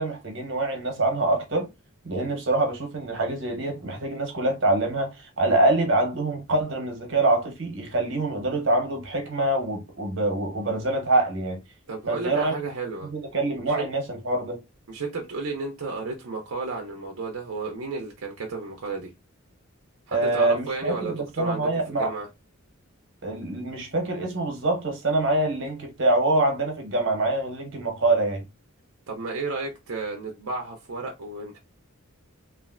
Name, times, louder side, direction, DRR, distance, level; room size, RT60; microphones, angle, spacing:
voice 1, 0.0-1.7 2.0-11.6 12.1-12.7 13.0-14.6 20.1-22.1 23.2-28.4, right 2 dB, 55° right, 1.0 m, -25 dB
voice 2, 11.9-13.1 13.7-13.9 14.9-19.1 20.1-22.3 29.1-31.6, right 3 dB, 80° right, 0.6 m, -33 dB
3.1 x 2.5 x 2.4 m
head